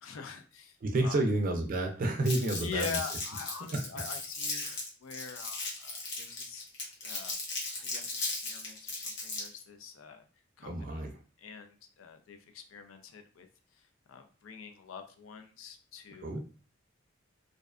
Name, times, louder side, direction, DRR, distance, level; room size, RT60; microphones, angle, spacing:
voice 1, 0.0-0.8 1.0-1.2 2.6-4.7 5.0-6.7 7.0-7.3 7.8-10.2 10.6-11.0 11.4-13.5 13.7-13.8 14.1-16.4, left 6 dB, 90° left, 6 dB, 0.4 m, -44 dB
voice 2, 0.8-3.0 3.7-3.8 4.6-4.8 10.6-11.1 16.2-16.4, right 2 dB, 45° right, 3 dB, 0.4 m, -30 dB
Crumpling crinkling, 2.2-9.6, left 3 dB, 60° left, 0.8 m, -37 dB
2.5 x 2.2 x 2.3 m, 0.40 s
head